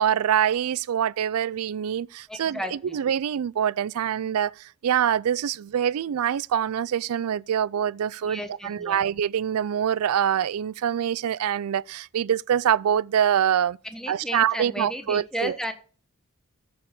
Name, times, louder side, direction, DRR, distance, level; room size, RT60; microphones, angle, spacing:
voice 1, 0.0-13.8 14.1-15.6, right 9 dB, 80° right, 0.3 m, -25 dB
voice 2, 2.3-2.9 8.2-9.0 13.9-15.7, equal, ahead, 1.0 m, -33 dB
14.0 x 4.9 x 5.2 m
head